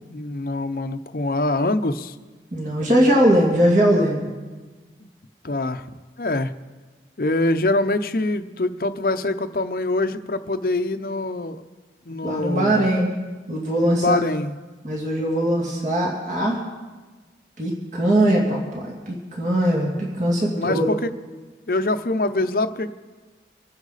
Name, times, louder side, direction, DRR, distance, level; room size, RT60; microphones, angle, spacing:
voice 1, 0.1-2.1 5.0-5.1 5.4-5.8 6.2-6.5 7.2-11.6 12.1-12.9 13.8-14.5 20.5-21.1 21.7-22.9, left 2 dB, 55° left, 10 dB, 0.7 m, -24 dB
voice 2, 2.5-4.3 12.2-13.1 13.5-14.2 14.8-16.6 17.6-20.9, right 1 dB, 45° right, -2 dB, 2.5 m, -20 dB
25.5 x 9.9 x 4.1 m, 1.3 s
head